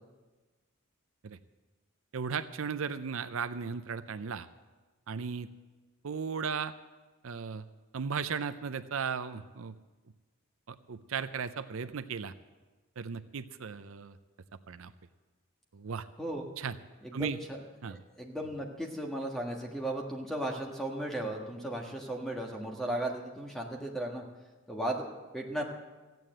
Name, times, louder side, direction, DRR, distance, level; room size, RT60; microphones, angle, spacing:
voice 1, 2.1-4.5 5.1-5.5 6.0-6.7 7.2-7.6 7.9-9.7 10.7-12.3 13.0-14.2 14.7-14.9 15.7-16.1 16.6-16.8 17.1-17.4 17.8-18.0, right 6 dB, 75° right, 11 dB, 0.5 m, -36 dB
voice 2, 16.2-16.5 17.0-17.6 17.9-24.2 24.7-25.6, right 1 dB, ahead, 0 dB, 1.5 m, -36 dB
14.5 x 9.3 x 7.7 m, 1.2 s
head